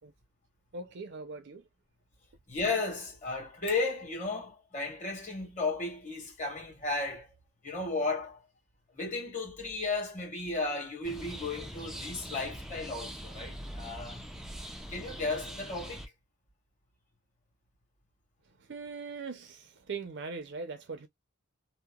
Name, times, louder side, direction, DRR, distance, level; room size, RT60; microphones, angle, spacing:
voice 1, 0.7-1.6 18.6-21.1, right 4 dB, 55° right, 0.6 m, -41 dB
voice 2, 2.5-7.3 7.6-8.4 8.9-14.2 14.9-16.0, left 3 dB, 35° left, 1.5 m, -34 dB
sound 1, 11.0-16.1, equal, ahead, 0.4 m, -43 dB
2.8 x 2.1 x 2.3 m
head